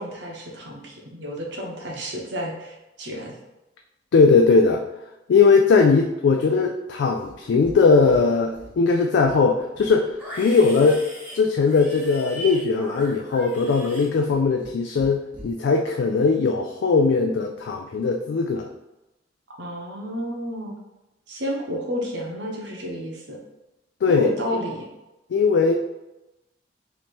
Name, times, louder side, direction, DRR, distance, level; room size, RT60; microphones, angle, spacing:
voice 1, 0.0-3.4 19.6-20.7 21.3-23.4 24.1-24.9, equal, 90° right, -1 dB, 1.0 m, -31 dB
voice 2, 4.1-4.8 5.3-11.1 11.3-18.7 24.0-24.3 25.3-25.7, left 4 dB, 75° left, 3 dB, 0.3 m, -19 dB
Livestock farm animals working animals, 7.1-7.8 8.0-8.8 9.1-14.7 15.0-15.5, equal, 10° right, 1.1 m, -39 dB
3.2 x 2.8 x 4.3 m, 0.99 s
head